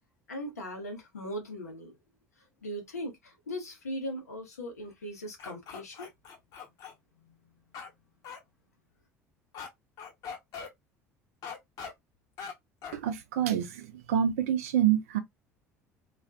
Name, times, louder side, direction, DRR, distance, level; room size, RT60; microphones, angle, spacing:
voice 1, 0.3-2.0 2.6-6.1 7.2-7.4, equal, 85° left, 0.7 m, -39 dB
sound 1, 5.4-6.9 7.7-7.9 8.2-8.4 9.5-9.7 10.0-10.7 11.4-11.9 12.4-12.5 12.8-13.0, left 6 dB, 50° left, 0.8 m, -41 dB
voice 2, 12.9-15.2, right 10 dB, 70° right, 0.5 m, -27 dB
2.4 x 2.2 x 2.3 m
figure-of-eight pair, 65°, 8 cm